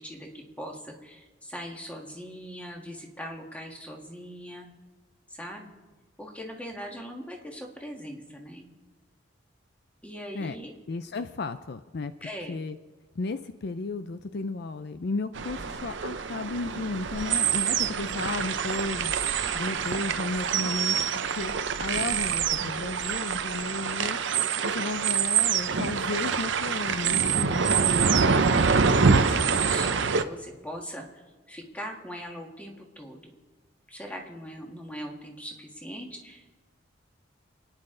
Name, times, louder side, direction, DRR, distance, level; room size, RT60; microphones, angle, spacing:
voice 1, 0.0-4.7 5.3-5.7 6.2-8.7 10.0-10.7 12.2-12.6 19.3-19.7 28.2-31.2 31.5-33.3 33.9-36.5, equal, 5° left, 1 dB, 1.7 m, -41 dB
voice 2, 10.9-12.1 12.5-12.8 13.2-21.5 21.8-24.2 24.6-27.6, left 3 dB, 55° left, 11 dB, 0.5 m, -34 dB
sound 1, 15.4-30.2, right 6 dB, 65° right, 0.7 m, -26 dB
29.0 x 9.8 x 3.8 m, 1.3 s
head